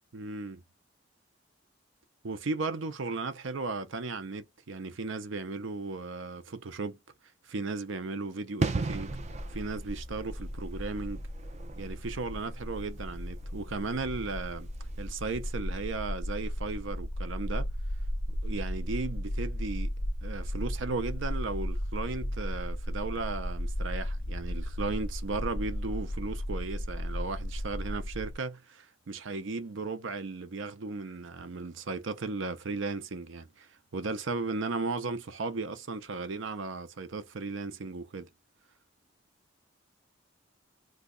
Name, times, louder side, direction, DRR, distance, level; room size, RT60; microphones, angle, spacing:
voice 1, 0.1-0.6 2.2-7.0 7.5-9.2 9.5-11.2 11.8-14.7 15.0-17.7 18.3-19.9 20.2-38.3, right 3 dB, 80° right, 0.6 m, -36 dB
sound 1, 8.6-15.1 15.4-15.5, right 3 dB, 35° right, 0.4 m, -37 dB
sound 2, 8.9-28.4, equal, 20° left, 0.4 m, -35 dB
2.8 x 2.3 x 3.7 m
head